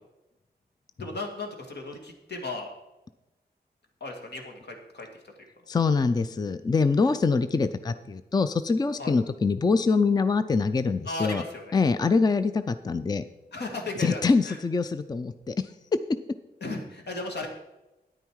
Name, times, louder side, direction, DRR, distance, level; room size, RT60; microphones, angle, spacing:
voice 1, 1.0-2.7 4.0-5.3 9.0-9.1 11.0-11.8 13.5-14.6 16.6-17.5, left 2 dB, 75° left, 3 dB, 1.9 m, -35 dB
voice 2, 5.7-11.4 11.7-13.2 14.0-15.7, left 4 dB, 25° left, 12 dB, 0.4 m, -24 dB
10.0 x 9.1 x 4.7 m, 0.99 s
wide cardioid pair, 105°, 17 cm